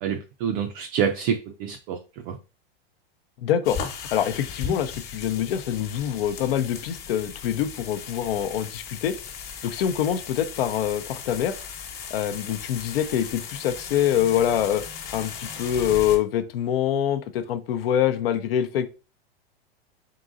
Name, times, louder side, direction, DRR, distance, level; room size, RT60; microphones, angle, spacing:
voice 1, 0.0-2.0 2.3-2.4, right 8 dB, 40° right, 0.4 m, -27 dB
voice 2, 3.4-3.8 4.1-9.1 9.6-11.5 12.1-14.8 15.1-18.9, left 10 dB, 70° left, 0.6 m, -25 dB
sound 1, 3.6-16.2, left 7 dB, 30° left, 1.0 m, -37 dB
3.8 x 3.8 x 2.5 m
supercardioid pair, 135°, 30 cm